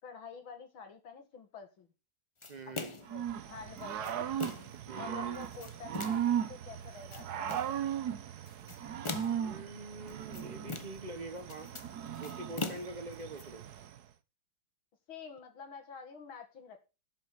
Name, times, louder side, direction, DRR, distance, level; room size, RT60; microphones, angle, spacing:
voice 1, 0.0-1.9 2.7-4.3 5.0-7.8 15.1-16.8, left 6 dB, 90° left, 5 dB, 2.8 m, -48 dB
sound 1, 2.4-3.2 3.8-4.8 5.3-6.3 6.9-7.7 8.5-9.5 10.1-11.1 11.4-13.4, left 3 dB, 30° left, 0.6 m, -42 dB
voice 2, 2.5-2.9 4.9-5.4 9.4-11.7 12.2-13.6, right 2 dB, 30° right, 9 dB, 0.9 m, -45 dB
Growling / Cricket, 3.1-14.0, right 9 dB, 60° right, 1.3 m, -37 dB
11.5 x 6.1 x 6.4 m, 0.30 s
omnidirectional pair, 2.2 m